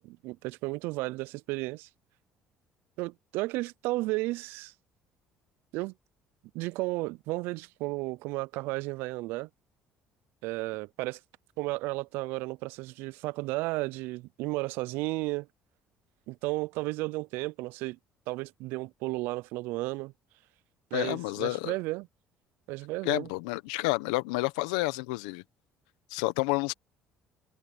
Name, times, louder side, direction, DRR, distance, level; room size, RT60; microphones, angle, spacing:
voice 1, 0.0-1.9 3.0-4.7 5.7-5.9 6.5-9.5 10.4-11.2 11.6-15.5 16.3-18.0 18.3-20.1 20.9-22.1 22.7-23.3, right 22 dB, 80° right, 0.4 m, -33 dB
voice 2, 20.9-21.8 23.0-25.4 26.1-26.7, left 22 dB, 90° left, 1.2 m, -30 dB
supercardioid pair, 75°, 4 cm